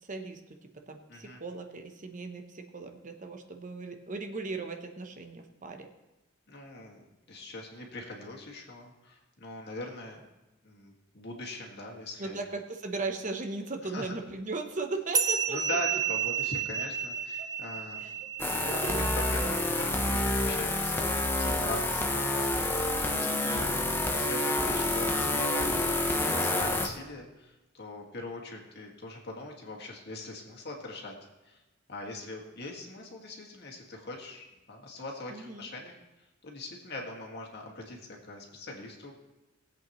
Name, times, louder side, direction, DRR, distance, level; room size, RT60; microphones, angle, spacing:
voice 1, 0.1-5.9 12.2-15.8 16.7-16.8 17.4-17.5 18.0-18.3 18.6-19.0 23.2-23.7 35.3-35.7, right 3 dB, 40° right, 5 dB, 0.8 m, -38 dB
voice 2, 1.1-1.4 6.5-10.2 10.6-12.4 13.8-14.1 15.5-18.0 18.6-18.9 19.1-21.1 21.4-31.2 31.4-31.6 31.9-39.1, left 2 dB, 55° left, 0 dB, 1.9 m, -41 dB
sound 1, 15.1-20.0, right 7 dB, 15° right, 0.5 m, -32 dB
sound 2, 18.4-26.9, left 2 dB, 10° left, 0.8 m, -28 dB
19.0 x 8.2 x 3.1 m, 1.0 s
head